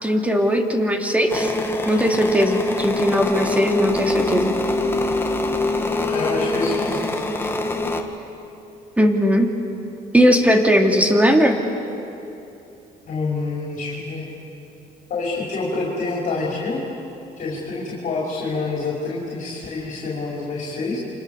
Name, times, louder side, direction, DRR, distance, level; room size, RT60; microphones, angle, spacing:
voice 1, 0.0-1.5 1.9-4.5 9.0-9.5 10.1-11.6, equal, 10° right, 3 dB, 2.9 m, -18 dB
sound 1, 1.3-8.0, left 2 dB, 15° left, 2.1 m, -24 dB
voice 2, 6.1-7.0 13.1-14.3 15.1-16.8 17.4-21.0, left 3 dB, 50° left, -4 dB, 5.5 m, -27 dB
29.0 x 26.0 x 7.1 m, 2.8 s
cardioid pair, 110°, 17 cm